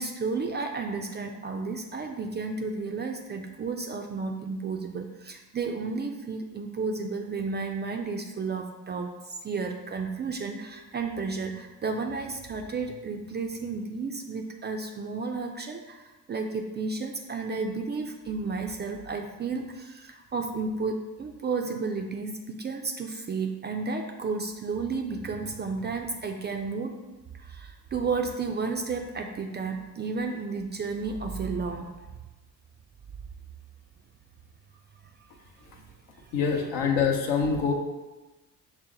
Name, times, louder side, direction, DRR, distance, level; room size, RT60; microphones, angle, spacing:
voice 1, 0.0-26.9 27.3-32.0 36.4-36.7, right 4 dB, 25° right, 3 dB, 0.4 m, -32 dB
voice 2, 36.3-37.7, left 6 dB, 70° left, 2 dB, 0.8 m, -25 dB
5.6 x 2.1 x 3.8 m, 1.1 s
hypercardioid pair, 50°, 44 cm